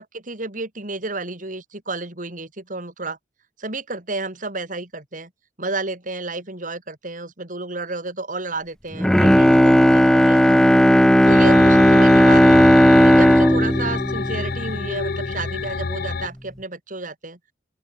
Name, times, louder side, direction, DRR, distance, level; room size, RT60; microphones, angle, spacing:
voice 1, 0.0-3.2 3.6-5.3 5.6-10.8 11.2-12.6 13.0-17.4, right 3 dB, 50° right, 4.5 m, -31 dB
Bowed string instrument, 8.9-15.2 15.6-15.7, equal, 5° left, 0.7 m, -14 dB
sound 1, 11.2-16.3, left 4 dB, 60° left, 0.7 m, -28 dB
open air
head